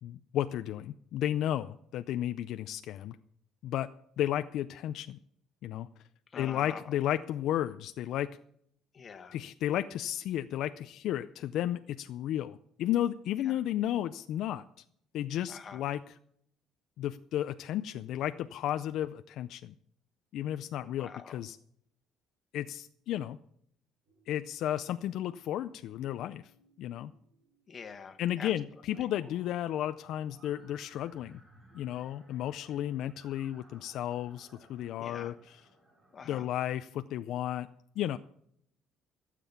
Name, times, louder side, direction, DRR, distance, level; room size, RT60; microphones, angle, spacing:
voice 1, 0.0-3.2 3.6-3.9 4.2-5.2 5.6-5.9 6.4-8.4 9.3-14.6 15.1-16.1 17.0-19.7 20.3-21.6 22.5-23.4 24.3-26.4 26.8-27.1 28.2-31.4 31.7-35.6 36.3-37.7 38.0-38.2, left 12 dB, 65° left, 11 dB, 0.4 m, -33 dB
voice 2, 6.3-6.9 8.9-9.4 13.4-13.6 15.5-15.8 21.0-21.4 27.7-28.5 29.0-29.1 35.0-35.3 36.1-36.5, left 6 dB, 30° left, 8 dB, 1.2 m, -45 dB
sound 1, 24.1-36.8, right 1 dB, 30° right, 5.0 m, -62 dB
15.5 x 7.5 x 7.1 m, 0.70 s
cardioid pair, 140°, 0 cm